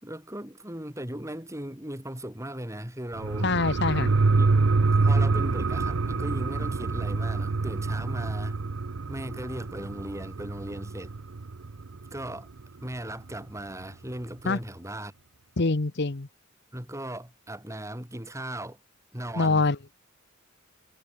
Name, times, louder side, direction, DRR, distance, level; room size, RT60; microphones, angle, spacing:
voice 1, 0.0-3.5 4.4-4.6 4.9-8.6 9.1-11.2 12.1-12.5 12.8-15.1 16.7-18.8 19.1-19.7, right 1 dB, 15° right, 7.1 m, -37 dB
sound 1, 3.1-12.2 12.6-12.7, right 3 dB, 85° right, 0.8 m, -26 dB
voice 2, 3.4-4.1 14.4-14.6 15.6-16.3 19.4-19.8, left 3 dB, 60° left, 1.0 m, -24 dB
head